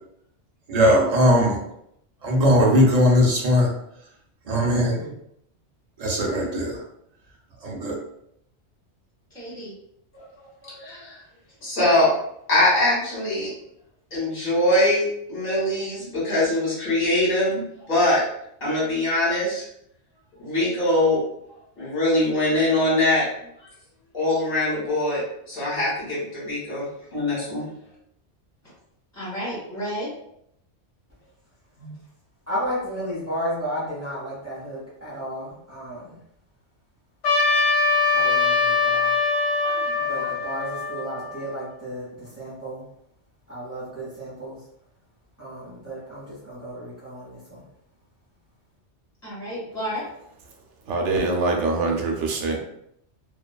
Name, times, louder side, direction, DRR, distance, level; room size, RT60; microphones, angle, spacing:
voice 1, 0.7-1.6 2.2-3.7 4.5-5.1 6.0-6.8 7.6-7.9, equal, 50° right, -1 dB, 0.5 m, -19 dB
voice 2, 9.3-9.7 27.0-27.1 29.1-30.1 49.2-50.0, equal, 35° left, -7 dB, 1.4 m, -32 dB
voice 3, 10.1-11.2 11.6-12.1 12.5-13.5 14.1-18.2 18.6-19.6 20.4-21.2 21.8-23.2 24.1-25.2 25.5-26.9 27.1-27.7 31.8-31.9 39.6-40.0, left 1 dB, 50° left, -7 dB, 1.4 m, -23 dB
voice 4, 32.5-36.2 38.1-39.1 39.9-42.8 43.5-44.6 45.4-47.6, equal, 15° right, -11 dB, 0.9 m, -33 dB
Trumpet, 37.2-41.7, left 4 dB, 80° left, 1.0 m, -22 dB
voice 5, 50.9-52.6, right 3 dB, 90° right, 2 dB, 0.9 m, -24 dB
2.5 x 2.3 x 2.2 m, 0.73 s
omnidirectional pair, 1.2 m